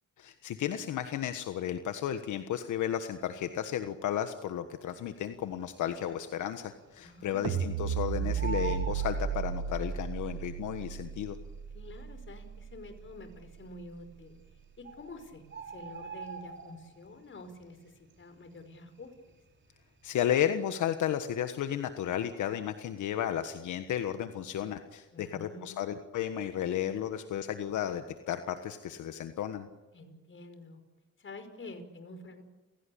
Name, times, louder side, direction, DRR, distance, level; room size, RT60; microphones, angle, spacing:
voice 1, 0.2-11.4 20.0-29.7, left 10 dB, 75° left, 9 dB, 1.4 m, -33 dB
Bird, 5.4-6.0 6.4-6.5 6.7-7.9 8.2-10.0 10.9-11.0 11.6-11.7 11.9-12.0 12.6-13.1 14.1-14.2 14.5-14.6 14.8-17.1 17.5-17.8 18.1-19.5 19.8-20.1, right 5 dB, 40° right, 5.4 m, -43 dB
voice 2, 7.0-7.7 11.7-14.4 14.8-17.9 18.2-19.1 25.1-25.9 29.9-30.8 31.2-32.4, left 2 dB, 40° left, 8 dB, 5.2 m, -48 dB
sound 1, 7.4-13.7, right 8 dB, 85° right, 2.0 m, -35 dB
29.5 x 17.0 x 8.6 m, 1.2 s
cardioid pair, 90°, 30 cm